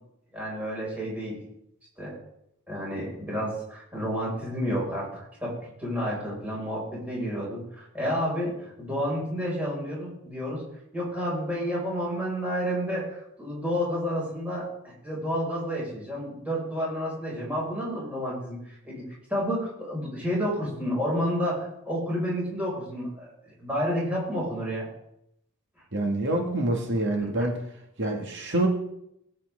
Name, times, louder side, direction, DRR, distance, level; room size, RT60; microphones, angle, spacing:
voice 1, 0.3-1.4 2.0-2.2 2.7-10.6 10.9-19.0 19.3-23.3 23.6-24.9, equal, 5° right, -6 dB, 5.7 m, -30 dB
voice 2, 25.9-27.6 28.0-28.7, right 2 dB, 55° right, 2 dB, 1.9 m, -26 dB
19.0 x 7.5 x 3.7 m, 0.78 s
head